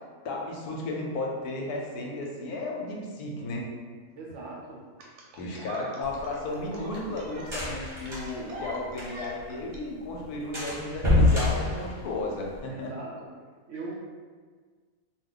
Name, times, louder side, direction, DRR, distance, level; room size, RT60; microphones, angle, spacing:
voice 1, 0.2-3.7 5.4-12.9, left 2 dB, 85° left, -1 dB, 1.1 m, -34 dB
voice 2, 4.2-4.8 12.7-13.1 13.7-14.0, right 3 dB, 65° right, -3 dB, 0.8 m, -39 dB
sound 1, 5.0-9.8 11.0-11.1, right 1 dB, 85° right, 1.2 m, -43 dB
sound 2, 6.0-9.4 9.7-9.8 10.1-10.2 10.5-12.6, left 2 dB, 25° right, 0.8 m, -27 dB
2.5 x 2.2 x 3.7 m, 1.5 s
omnidirectional pair, 1.6 m